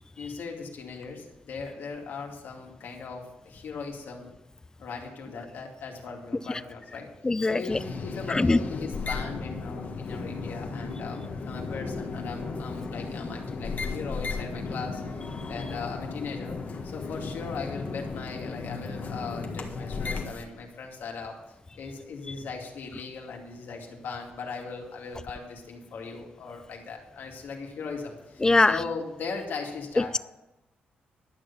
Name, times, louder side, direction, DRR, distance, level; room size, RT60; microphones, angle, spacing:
voice 1, 0.2-4.3 4.8-7.1 7.4-15.0 15.5-30.1, left 4 dB, 75° left, 0 dB, 2.3 m, -38 dB
voice 2, 7.2-7.8 8.3-8.6 28.4-28.8 30.0-30.2, left 2 dB, 20° left, 17 dB, 0.4 m, -22 dB
sound 1, 7.7-20.4, left 4 dB, 50° left, 1.6 m, -35 dB
11.5 x 6.4 x 7.2 m, 1.0 s
cardioid pair, 100°, 4 cm